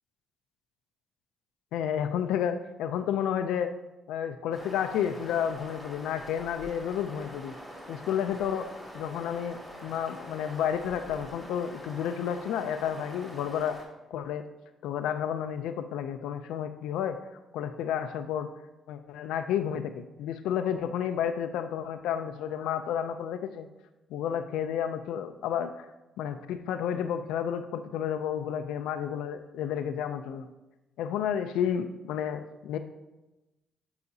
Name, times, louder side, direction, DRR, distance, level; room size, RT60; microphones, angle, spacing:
voice 1, 1.7-3.7 4.1-7.5 7.9-8.7 8.9-13.8 14.1-14.4 14.8-17.2 17.5-18.5 18.9-23.7 24.1-25.9 26.2-30.5 31.0-32.8, left 9 dB, 90° left, 8 dB, 0.4 m, -31 dB
sound 1, 4.5-13.8, equal, 5° right, 2.2 m, -45 dB
9.3 x 4.9 x 2.7 m, 1.0 s
cardioid pair, 90°, 0 cm